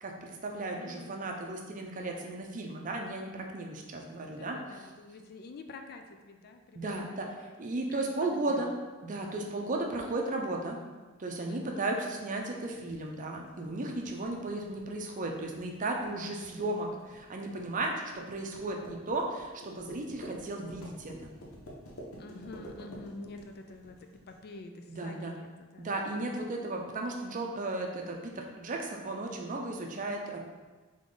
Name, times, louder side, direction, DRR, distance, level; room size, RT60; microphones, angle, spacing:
voice 1, 0.0-4.6 6.7-7.3 7.6-8.7 9.0-10.8 11.2-21.3 24.9-25.3 25.8-30.4, right 2 dB, 40° right, 1 dB, 0.6 m, -35 dB
voice 2, 0.6-1.2 4.2-7.5 7.9-8.8 11.5-11.9 16.0-16.6 22.2-26.5, left 3 dB, 45° left, 6 dB, 0.4 m, -48 dB
sound 1, 12.8-24.4, equal, 70° left, 0.9 m, -49 dB
3.8 x 3.6 x 3.8 m, 1.3 s
head